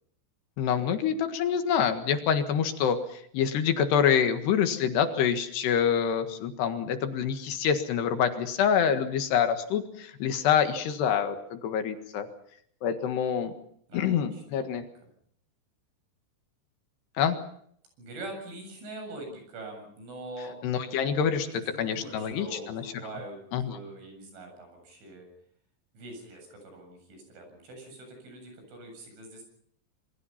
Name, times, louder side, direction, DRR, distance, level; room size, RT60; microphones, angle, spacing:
voice 1, 0.6-12.3 12.8-13.5 13.9-14.8 17.2-17.4 20.6-21.5 21.8-22.9 23.5-23.8, left 8 dB, 70° left, 8 dB, 3.6 m, -26 dB
voice 2, 14.3-14.6 18.0-20.6 21.4-23.4 23.6-25.3 25.9-29.5, right 2 dB, 85° right, 4 dB, 10.0 m, -43 dB
27.0 x 23.0 x 5.8 m, 0.65 s
omnidirectional pair, 5.3 m